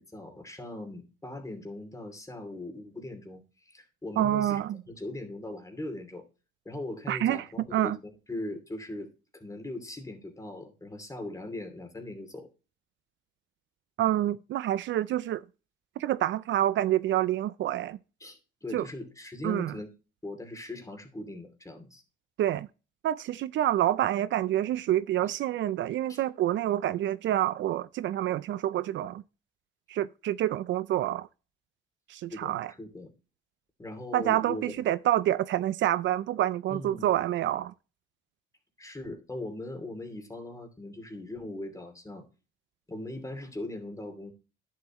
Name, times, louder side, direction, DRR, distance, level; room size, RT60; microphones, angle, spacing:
voice 1, 0.0-6.2 6.6-12.5 18.2-19.9 20.2-22.0 26.1-26.2 32.3-33.1 33.8-34.7 36.7-37.1 38.8-42.2 42.9-44.3, left 1 dB, 15° left, 2.7 m, -40 dB
voice 2, 4.2-4.8 7.1-8.0 14.0-15.4 16.0-18.0 18.7-18.9 19.4-19.7 22.4-22.7 23.0-29.2 29.9-31.3 32.1-32.7 34.1-37.7, right 12 dB, 70° right, 0.4 m, -27 dB
10.5 x 7.4 x 3.0 m
cardioid pair, 90°, 20 cm